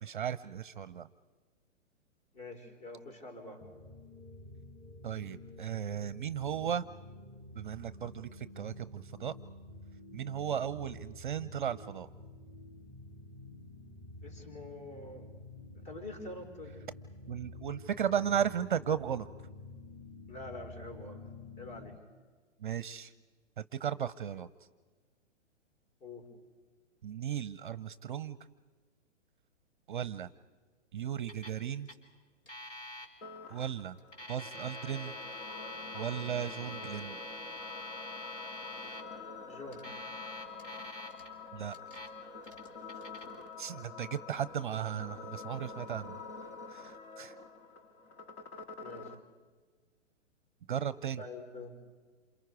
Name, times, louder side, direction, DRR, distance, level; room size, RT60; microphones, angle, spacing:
voice 1, 0.0-1.1 5.0-6.9 7.6-9.3 10.1-12.1 17.3-19.3 22.6-23.1 23.6-24.5 27.0-28.4 29.9-30.3 30.9-31.9 33.5-34.0 34.3-35.1 35.9-37.2 41.5-41.8 43.6-46.2 46.7-47.3 50.7-51.2, right 9 dB, 40° right, 16 dB, 0.6 m, -35 dB
voice 2, 2.3-3.6 14.2-15.3 15.7-16.8 20.3-21.3 21.6-22.0 26.0-26.2 39.5-39.9 43.7-44.1 48.8-49.1 51.2-51.8, left 2 dB, 35° left, 4 dB, 4.8 m, -46 dB
sound 1, 3.6-22.0, left 2 dB, 15° left, 1.5 m, -50 dB
Alarm, 31.3-31.6 31.9-32.0 32.5-33.1 34.0-39.0 39.7-41.3 41.7-42.1 42.4-43.3, left 1 dB, 75° left, 4.3 m, -45 dB
sound 2, 33.2-49.2, left 4 dB, 60° left, 2.0 m, -47 dB
28.0 x 27.5 x 4.8 m, 1.4 s
figure-of-eight pair, 120°, 37 cm